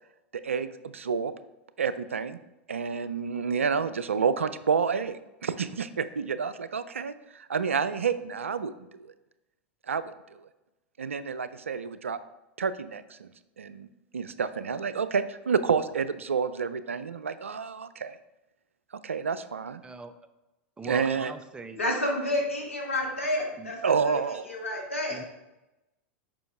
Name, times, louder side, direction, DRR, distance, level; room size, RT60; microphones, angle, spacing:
voice 1, 0.3-1.3 1.8-2.4 2.7-9.1 9.9-10.5 11.0-12.2 12.6-13.3 13.6-13.9 14.1-18.2 19.0-19.8 20.8-21.3 23.8-24.5, right 6 dB, 85° right, 14 dB, 0.4 m, -29 dB
voice 2, 19.8-20.1 20.8-21.8 23.6-23.7 25.1-25.2, right 3 dB, 15° right, 10 dB, 0.5 m, -41 dB
voice 3, 21.8-24.2 24.5-25.3, left 1 dB, 90° left, 1 dB, 1.4 m, -30 dB
6.9 x 5.5 x 3.4 m, 0.98 s
figure-of-eight pair, 90°, 7 cm